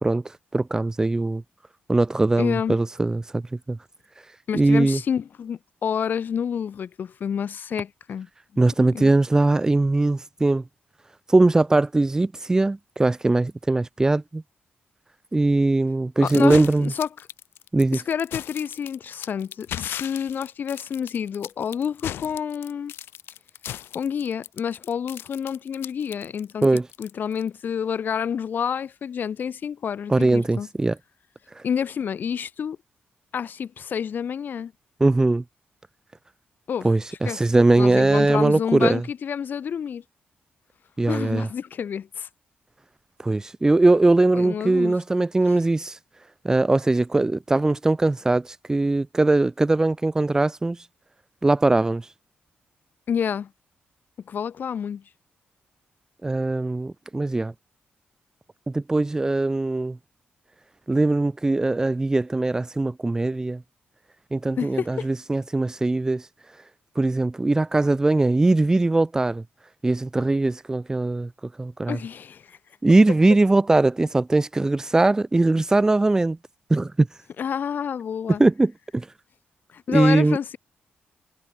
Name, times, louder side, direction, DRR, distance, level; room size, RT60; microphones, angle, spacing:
voice 1, 0.0-1.4 1.9-3.4 3.7-3.8 4.2-5.0 8.6-10.6 11.3-14.4 15.3-16.9 17.7-18.0 26.6-26.9 30.1-31.0 31.5-31.6 35.0-35.4 36.8-39.0 41.0-41.5 43.2-46.0 46.4-50.9 51.4-52.1 56.2-57.5 58.7-60.0 60.9-63.6 64.3-66.6 66.9-69.4 69.8-71.3 71.6-72.0 72.8-76.4 76.7-77.2 78.4-79.1 79.9-80.4, right 2 dB, 15° right, 1.2 m, -21 dB
voice 2, 2.4-2.8 4.5-8.3 8.8-9.2 16.2-17.1 17.9-22.9 23.9-26.7 27.0-30.7 31.6-32.8 33.3-34.7 36.7-36.9 37.2-37.4 37.8-40.0 41.1-42.3 44.3-45.0 53.1-53.5 54.3-55.0 64.6-65.1 71.9-72.6 77.4-78.4 79.7-80.6, left 7 dB, 60° left, 4.8 m, -29 dB
sound 1, 16.3-27.5, left 11 dB, 90° left, 5.6 m, -37 dB
cardioid pair, 110°, 4 cm